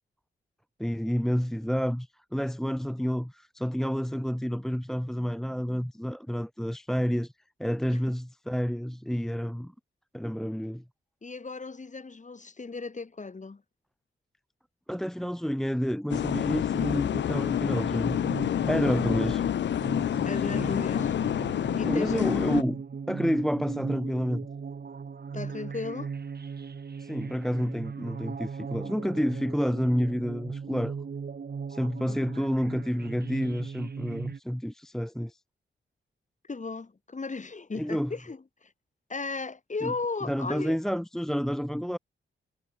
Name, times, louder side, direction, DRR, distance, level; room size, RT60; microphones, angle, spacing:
voice 1, 0.8-7.3 7.6-9.7 10.1-10.8 14.9-18.2 18.5-19.4 21.8-24.5 27.0-30.9 31.7-35.4 37.8-38.1 39.8-39.9 40.3-42.0, equal, ahead, 0.9 m, -29 dB
voice 2, 11.2-13.6 20.2-21.1 21.7-22.1 25.3-26.1 32.1-32.2 36.4-38.7 39.1-40.8, left 4 dB, 35° left, 7.2 m, -36 dB
sound 1, 16.1-22.6, left 10 dB, 60° left, 0.4 m, -28 dB
sound 2, 18.1-34.4, right 6 dB, 50° right, 2.5 m, -38 dB
cardioid pair, 95°, 21 cm